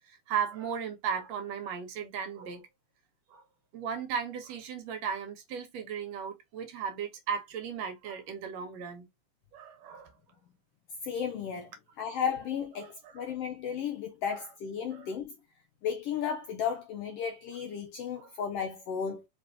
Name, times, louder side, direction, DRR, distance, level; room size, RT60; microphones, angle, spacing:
voice 1, 0.1-2.7 3.3-3.4 3.7-9.1 9.5-10.1 12.8-13.2 14.3-14.4 14.9-15.1 18.2-18.3, right 7 dB, 70° right, 1.9 m, -36 dB
voice 2, 11.0-15.3 15.8-19.3, left 7 dB, 75° left, 1.4 m, -34 dB
4.8 x 3.3 x 2.6 m
omnidirectional pair, 3.4 m